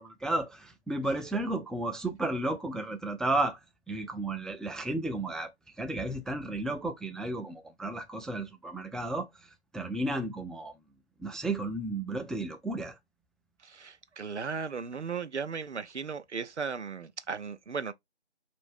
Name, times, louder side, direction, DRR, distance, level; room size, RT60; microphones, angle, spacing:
voice 1, 0.0-3.6 3.9-5.5 5.8-9.3 9.7-10.7 11.2-13.0, right 2 dB, ahead, 0.3 m, -33 dB
voice 2, 13.6-17.9, right 5 dB, 85° right, 0.6 m, -36 dB
3.8 x 2.6 x 3.5 m
figure-of-eight pair, 175°, 34 cm